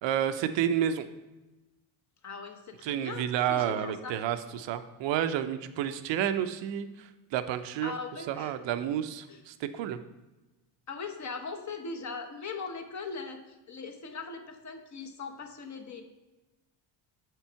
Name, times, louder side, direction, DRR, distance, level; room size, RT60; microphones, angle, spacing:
voice 1, 0.0-1.1 2.8-7.9 8.3-10.0, right 10 dB, 60° right, 10 dB, 0.6 m, -30 dB
voice 2, 2.2-4.1 7.8-8.5 9.3-9.4 10.9-16.0, left 4 dB, 35° left, 5 dB, 0.8 m, -40 dB
6.6 x 4.5 x 4.5 m, 1.1 s
supercardioid pair, 80°, 50 cm